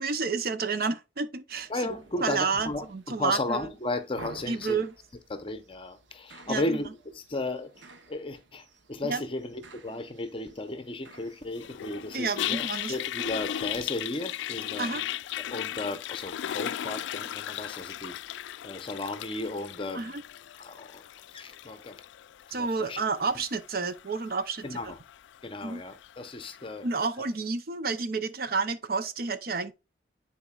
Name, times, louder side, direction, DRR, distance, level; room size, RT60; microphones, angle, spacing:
voice 1, 0.0-1.7 2.2-3.7 4.5-4.9 6.5-6.8 9.0-9.2 12.1-13.0 14.8-15.0 19.9-20.2 22.5-24.8 25.6-25.8 26.8-29.7, right 4 dB, 55° right, 0.6 m, -30 dB
sound 1, 1.5-14.0, right 3 dB, 85° right, 1.0 m, -53 dB
voice 2, 1.7-4.8 5.3-7.7 8.1-15.0 15.4-20.1 20.6-21.0 21.3-22.0 22.5-23.0 24.6-25.0 25.4-26.9, left 2 dB, 30° left, 0.7 m, -35 dB
Toilet flush, 11.6-26.8, left 11 dB, 80° left, 0.3 m, -37 dB
10.0 x 4.3 x 2.4 m
head